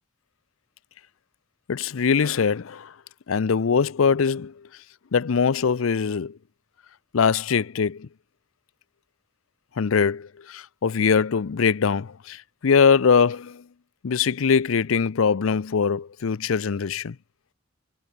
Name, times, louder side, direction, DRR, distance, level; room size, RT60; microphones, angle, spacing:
voice 1, 1.7-2.9 3.3-4.5 5.1-6.3 7.1-8.1 9.8-13.6 14.0-17.2, left 6 dB, 85° left, 0.5 m, -22 dB
head